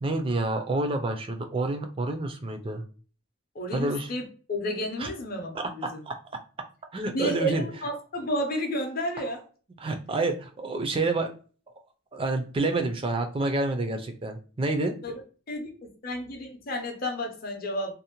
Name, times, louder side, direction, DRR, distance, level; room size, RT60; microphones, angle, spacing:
voice 1, 0.0-2.8 3.7-4.1 5.0-5.1 5.5-6.1 6.9-7.7 9.8-11.3 12.1-14.9, right 2 dB, 25° right, 6 dB, 0.3 m, -28 dB
voice 2, 3.5-6.0 7.1-9.4 15.0-15.2 15.5-17.9, equal, 45° left, 3 dB, 0.6 m, -31 dB
2.6 x 2.1 x 2.8 m, 0.39 s
head